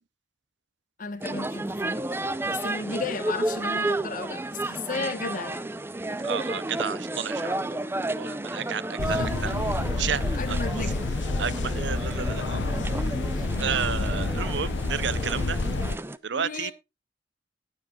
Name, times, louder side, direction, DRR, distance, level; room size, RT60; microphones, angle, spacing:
voice 1, 1.0-2.0 2.4-5.7 9.1-9.3 10.4-11.1 12.7-12.8 13.3-13.5 16.3-16.7, left 4 dB, 45° left, 1.0 m, -34 dB
sound 1, 1.2-16.2, right 2 dB, 15° right, 0.5 m, -32 dB
voice 2, 6.2-9.5 10.0-10.9 11.4-12.7 13.6-15.6 16.2-16.7, right 7 dB, 70° right, 0.6 m, -32 dB
sound 2, 9.0-16.0, left 3 dB, 80° left, 0.7 m, -29 dB
19.5 x 7.3 x 2.3 m
head